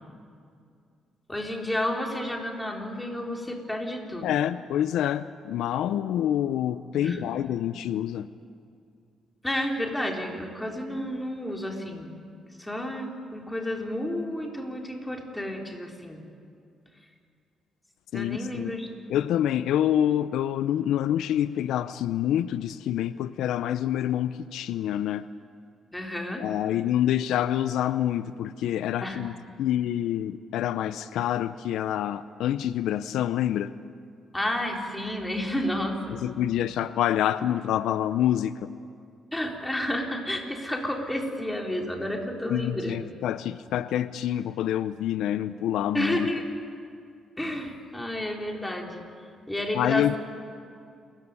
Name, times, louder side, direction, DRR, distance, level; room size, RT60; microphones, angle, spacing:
voice 1, 1.3-4.4 7.0-7.3 9.4-12.1 12.6-16.2 18.1-18.9 25.9-26.4 29.0-29.2 34.3-36.1 39.3-43.0 45.9-46.6 47.4-49.0 49.5-50.2, left 1 dB, 10° left, 1 dB, 3.9 m, -31 dB
voice 2, 4.2-8.3 18.1-18.7 19.1-25.2 26.4-33.7 36.1-38.7 42.5-46.3 49.7-50.2, left 11 dB, 85° left, 14 dB, 0.6 m, -27 dB
28.0 x 15.0 x 9.8 m, 2.3 s
cardioid pair, 90°, 0 cm